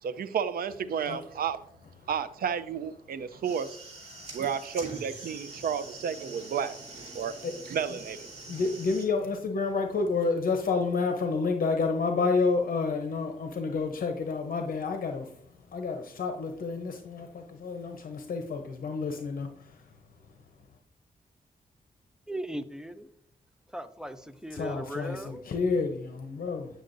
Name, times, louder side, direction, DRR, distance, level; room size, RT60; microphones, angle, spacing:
voice 1, 0.0-1.6 2.1-3.8 4.3-6.8 7.1-7.3 7.7-8.3, right 7 dB, 75° right, 0.5 m, -32 dB
sound 1, 3.3-9.0, right 2 dB, 45° right, 3.3 m, -44 dB
voice 2, 8.5-15.3 15.7-19.5 24.5-26.7, left 4 dB, 70° left, 0.8 m, -29 dB
voice 3, 22.3-23.1 23.7-25.4, right 1 dB, 5° right, 0.5 m, -38 dB
9.2 x 6.4 x 2.6 m
wide cardioid pair, 115°, 15 cm